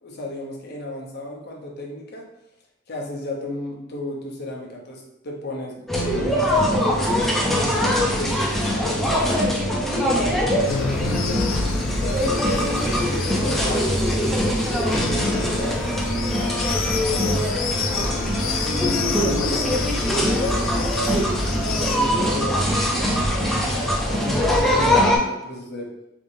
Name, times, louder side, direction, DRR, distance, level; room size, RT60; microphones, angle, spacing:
voice 1, 0.0-2.3 2.9-7.0 7.5-9.6 10.0-14.0 14.8-16.3 17.2-17.5 18.7-20.8 21.5-25.9, left 1 dB, 55° left, -1 dB, 0.8 m, -33 dB
sound 1, 5.9-25.2, equal, ahead, 0.5 m, -22 dB
sound 2, 10.7-22.0, left 4 dB, 85° left, 0.4 m, -29 dB
3.4 x 3.4 x 2.6 m, 0.88 s
head